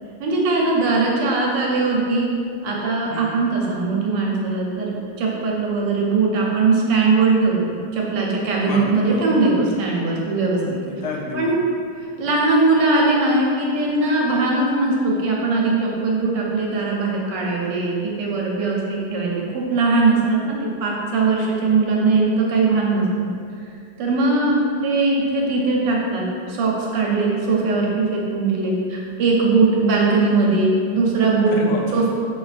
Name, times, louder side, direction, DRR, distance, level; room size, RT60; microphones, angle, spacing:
voice 1, 0.2-2.3 2.6-10.6 11.3-11.6 12.2-23.0 24.0-26.2 26.5-31.6 31.9-32.1, right 3 dB, 85° right, -3 dB, 1.3 m, -20 dB
voice 2, 8.6-9.3 10.6-11.7 31.5-32.1, left 3 dB, 75° left, -1 dB, 1.1 m, -30 dB
5.2 x 2.7 x 2.4 m, 2.3 s
omnidirectional pair, 1.9 m